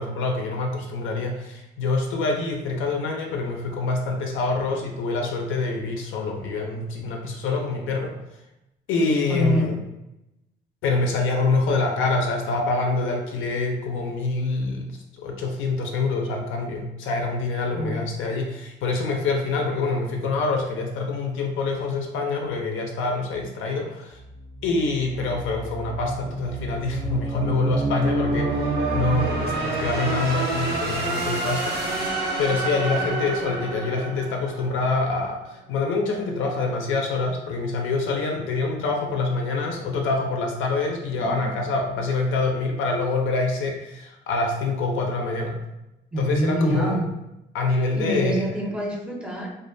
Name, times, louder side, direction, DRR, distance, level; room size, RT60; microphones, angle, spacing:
voice 1, 0.0-8.1 8.9-9.8 10.8-14.9 15.2-24.2 24.6-31.8 32.4-45.6 46.2-47.0 47.5-48.4, left 3 dB, 85° left, 1 dB, 0.4 m, -26 dB
voice 2, 9.3-9.7 17.7-18.0 41.2-41.5 46.1-47.0 47.9-49.5, equal, 5° right, -1 dB, 0.5 m, -25 dB
sound 1, 24.2-35.2, right 2 dB, 55° right, 0.6 m, -28 dB
2.3 x 2.1 x 2.5 m, 0.91 s
cardioid pair, 90°, 20 cm